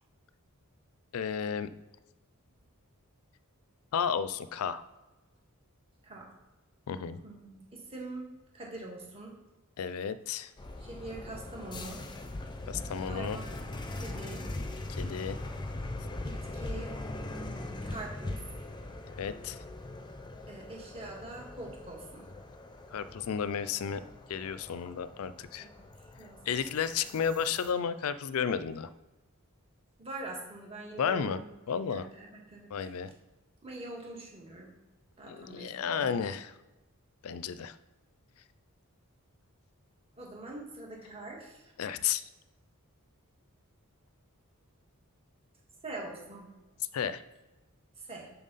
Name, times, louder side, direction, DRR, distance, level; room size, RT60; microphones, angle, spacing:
voice 1, 1.1-1.7 3.9-4.8 6.9-7.2 9.8-10.5 12.7-13.4 14.9-15.4 19.1-19.6 22.9-24.0 24.3-25.7 26.5-28.9 31.0-31.4 31.7-32.1 32.7-33.1 35.2-36.5 37.2-37.8 41.8-42.2 46.9-47.2, left 7 dB, 70° left, 14 dB, 0.4 m, -32 dB
voice 2, 7.2-8.3 8.5-9.3 10.8-12.1 13.0-13.7 13.9-14.5 16.2-17.0 17.8-18.7 20.5-22.3 25.6-26.5 27.0-27.1 30.0-31.4 31.9-32.9 33.6-34.7 35.2-36.3 40.2-41.7 45.8-46.5 48.0-48.3, right 2 dB, 25° right, -1 dB, 1.9 m, -44 dB
sound 1, 10.6-27.7, left 2 dB, 20° left, 0.6 m, -41 dB
7.3 x 5.8 x 4.1 m, 1.1 s
head